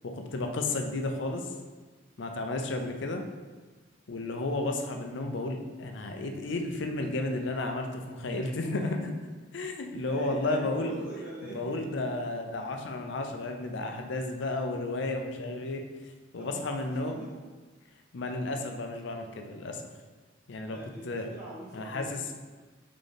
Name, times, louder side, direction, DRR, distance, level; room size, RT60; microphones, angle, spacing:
voice 1, 0.0-1.5 2.2-3.3 4.1-9.1 9.5-10.9 11.4-17.2 18.1-19.8 20.5-20.8 21.1-21.3 21.7-22.2, left 2 dB, 65° left, 4 dB, 0.5 m, -33 dB
voice 2, 8.3-8.7 9.9-11.8 16.4-17.4 20.6-22.1, right 1 dB, 35° right, -10 dB, 1.0 m, -44 dB
3.9 x 3.7 x 3.4 m, 1.3 s
head